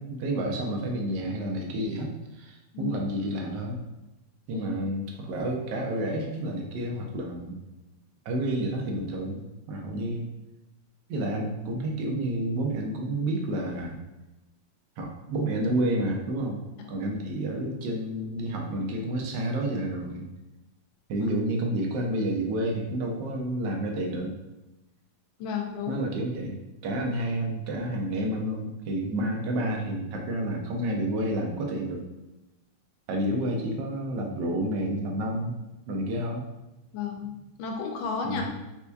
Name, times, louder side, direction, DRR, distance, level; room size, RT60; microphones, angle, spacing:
voice 1, 0.0-3.8 4.5-7.6 8.2-9.4 9.7-10.3 11.1-14.0 15.0-16.6 16.9-20.3 21.1-24.3 25.9-26.6 26.8-32.0 33.1-35.5 35.9-36.4 38.2-38.5, right 1 dB, 70° right, 1 dB, 1.1 m, -30 dB
voice 2, 25.4-26.0 36.9-37.3 37.6-38.5, left 6 dB, 90° left, 2 dB, 1.4 m, -32 dB
4.4 x 2.6 x 2.2 m, 0.99 s
omnidirectional pair, 2.1 m